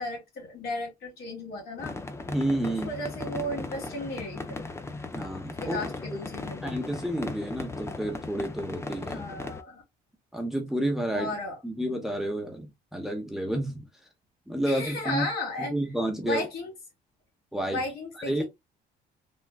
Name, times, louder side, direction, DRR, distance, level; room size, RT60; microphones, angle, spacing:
voice 1, 0.0-2.0 2.7-4.6 5.6-6.6 9.1-9.8 11.1-11.6 14.6-15.7 16.2-16.7 17.6-18.4, left 1 dB, 70° left, 1.9 m, -34 dB
sound 1, 1.8-9.6, left 3 dB, 15° left, 0.4 m, -37 dB
voice 2, 2.3-2.9 5.1-5.8 6.1-6.2 6.6-9.3 10.3-11.3 11.6-13.9 14.5-15.3 15.6-16.4 17.5-17.8 18.2-18.4, right 1 dB, ahead, 0.7 m, -30 dB
3.5 x 2.3 x 2.2 m
cardioid pair, 110°, 17 cm